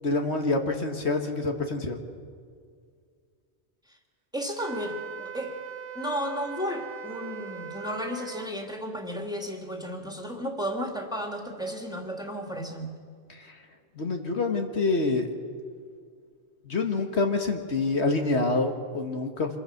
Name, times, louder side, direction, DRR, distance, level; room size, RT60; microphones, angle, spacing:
voice 1, 0.0-2.0 13.3-13.6 14.0-15.3 16.7-19.6, left 3 dB, 70° left, 4 dB, 1.9 m, -27 dB
voice 2, 4.3-5.5 5.9-12.9, equal, 5° right, 2 dB, 2.5 m, -33 dB
Wind instrument woodwind instrument, 4.6-8.5, right 8 dB, 55° right, 1.3 m, -40 dB
26.5 x 22.0 x 5.9 m, 2.1 s
omnidirectional pair, 1.2 m